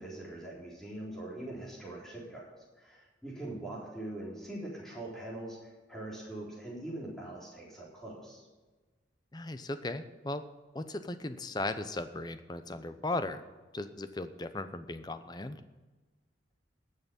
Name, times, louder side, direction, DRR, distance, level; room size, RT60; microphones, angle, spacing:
voice 1, 0.0-2.5 2.8-8.5, right 1 dB, ahead, -5 dB, 3.8 m, -42 dB
voice 2, 9.3-10.4 10.7-13.4 13.7-15.6, left 2 dB, 20° left, 10 dB, 0.7 m, -37 dB
19.0 x 6.6 x 5.3 m, 1.3 s
head